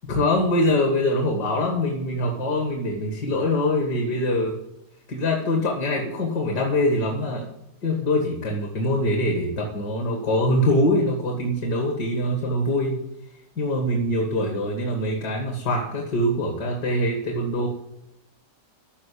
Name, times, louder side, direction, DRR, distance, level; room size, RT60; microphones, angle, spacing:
voice 1, 0.1-4.6 5.1-7.5 7.8-13.0 13.6-17.7, left 1 dB, 65° left, 1 dB, 2.4 m, -23 dB
14.0 x 4.9 x 8.4 m, 0.83 s
omnidirectional pair, 2.0 m